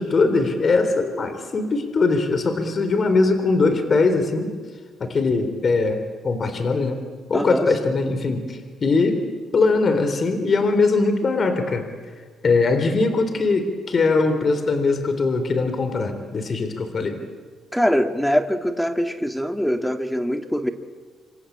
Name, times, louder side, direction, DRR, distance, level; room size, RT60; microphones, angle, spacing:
voice 1, 0.0-4.5 5.0-7.0 7.3-9.2 9.5-11.9 12.4-17.2, left 3 dB, 45° left, 8 dB, 3.7 m, -21 dB
voice 2, 7.3-7.7 17.7-20.7, equal, 5° left, 7 dB, 2.1 m, -23 dB
27.0 x 25.0 x 8.7 m, 1.5 s
cardioid pair, 90°, 0 cm